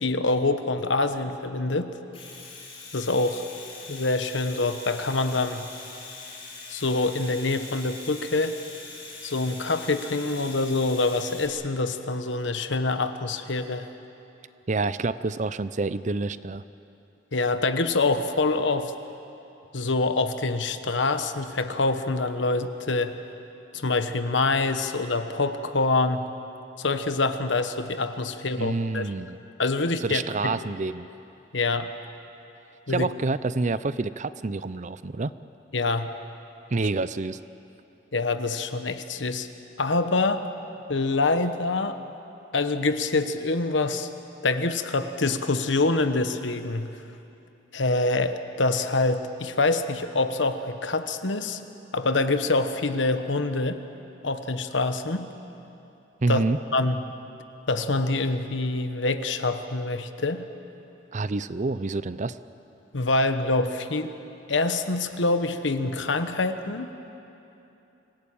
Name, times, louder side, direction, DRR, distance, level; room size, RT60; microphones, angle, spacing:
voice 1, 0.0-2.0 2.9-3.5 3.9-5.7 6.7-8.6 9.2-13.9 17.3-18.9 19.7-23.2 23.7-26.3 26.8-29.1 29.6-30.5 31.5-31.9 32.9-33.1 35.7-36.1 38.1-39.5 39.8-40.4 40.9-42.0 42.5-44.1 44.4-47.0 47.7-51.6 51.9-53.8 54.2-55.3 56.3-56.4 56.7-57.0 57.7-60.5 62.9-64.1 64.5-66.9, left 3 dB, 75° left, 9 dB, 1.2 m, -25 dB
Domestic sounds home sounds, 2.0-11.5, left 3 dB, 30° left, 4.3 m, -42 dB
voice 2, 14.7-16.6 28.6-29.4 30.0-31.1 32.9-35.3 36.7-37.4 56.2-56.6 61.1-62.4, right 3 dB, 40° right, 14 dB, 0.6 m, -27 dB
26.0 x 17.5 x 8.8 m, 2.9 s
head